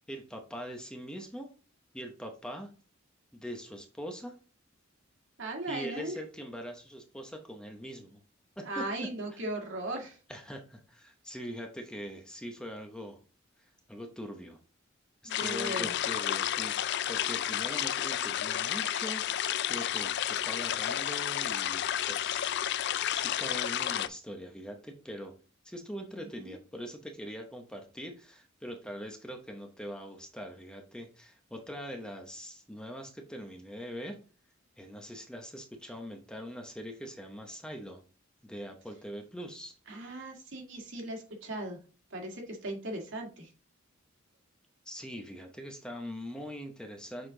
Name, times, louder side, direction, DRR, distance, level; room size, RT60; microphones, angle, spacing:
voice 1, 0.0-1.5 1.9-2.7 3.3-4.3 5.7-8.2 8.6-8.8 9.3-9.4 10.3-13.2 13.6-14.6 15.2-22.9 23.1-25.4 25.6-34.2 34.8-38.0 38.4-39.7 44.8-47.3, equal, 5° left, 3 dB, 0.8 m, -42 dB
voice 2, 5.4-6.2 8.6-10.2 15.2-16.0 26.1-26.6 39.9-41.8 42.1-43.5, right 1 dB, 65° right, 1 dB, 2.0 m, -38 dB
sound 1, 15.3-24.1, left 11 dB, 55° left, 0.4 m, -31 dB
6.7 x 4.4 x 3.8 m, 0.37 s
head